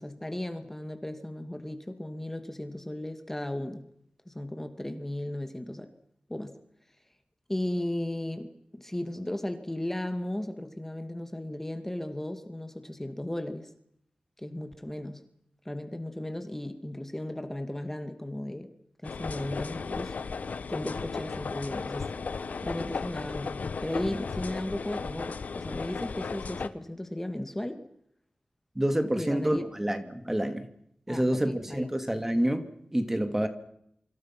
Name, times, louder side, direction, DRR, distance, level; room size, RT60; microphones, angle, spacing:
voice 1, 0.0-3.8 4.3-5.9 6.3-6.5 7.5-13.7 14.4-15.2 15.7-18.7 19.0-20.2 20.7-22.1 22.6-27.8 29.1-29.6 31.1-31.9, left 1 dB, 10° left, 8 dB, 2.3 m, -35 dB
sound 1, 19.0-26.7, left 5 dB, 75° left, 1.4 m, -35 dB
voice 2, 28.8-30.7 31.1-33.5, right 1 dB, 15° right, 8 dB, 2.5 m, -28 dB
27.5 x 25.5 x 6.1 m, 0.74 s
wide cardioid pair, 90°, 3 cm